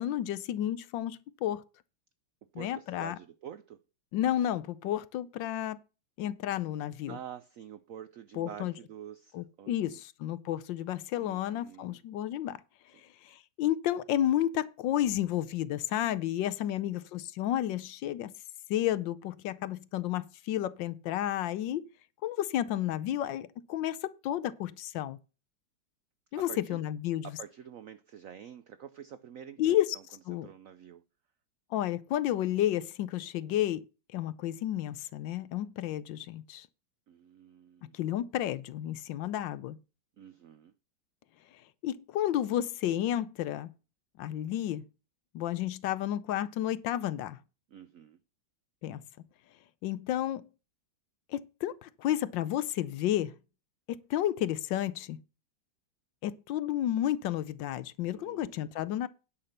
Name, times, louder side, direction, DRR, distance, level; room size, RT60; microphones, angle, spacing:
voice 1, 0.0-1.6 2.5-3.2 4.1-5.8 6.2-7.2 8.4-8.7 9.3-12.6 13.2-18.3 18.7-21.9 22.2-25.2 26.3-27.3 29.6-30.0 30.3-30.5 31.7-33.8 34.1-36.7 37.9-39.8 41.8-43.7 44.2-44.8 45.3-47.4 48.8-49.0 49.8-50.5 51.3-53.3 53.9-55.2 56.2-59.1, left 12 dB, 75° left, 1.3 m, -31 dB
voice 2, 2.5-3.8 7.1-10.0 11.2-12.0 26.3-26.8 27.2-30.0 30.3-31.0 37.1-38.0 40.2-40.7 47.7-48.2 58.1-58.7, right 9 dB, 90° right, 0.7 m, -48 dB
9.9 x 5.8 x 6.5 m
omnidirectional pair, 2.1 m